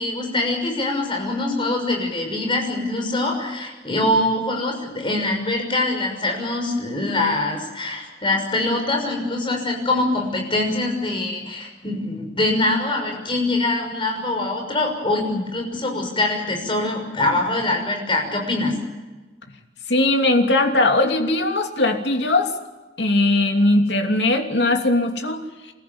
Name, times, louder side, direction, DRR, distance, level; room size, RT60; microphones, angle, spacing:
voice 1, 0.0-18.8, left 2 dB, 30° left, 2 dB, 6.4 m, -23 dB
voice 2, 19.9-22.5 23.0-25.4, left 2 dB, 75° left, 4 dB, 2.9 m, -19 dB
28.5 x 14.5 x 9.6 m, 1.2 s
head